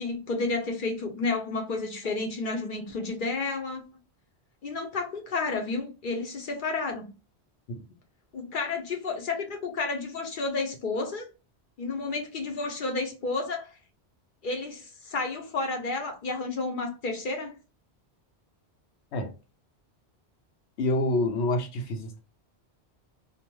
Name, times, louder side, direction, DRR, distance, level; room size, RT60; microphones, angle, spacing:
voice 1, 0.0-3.8 4.6-7.1 8.3-11.3 11.8-13.8 14.4-17.5, left 3 dB, 55° left, 0.7 m, -31 dB
voice 2, 20.8-22.2, left 2 dB, 80° left, 0.9 m, -27 dB
2.6 x 2.1 x 3.0 m
omnidirectional pair, 1.1 m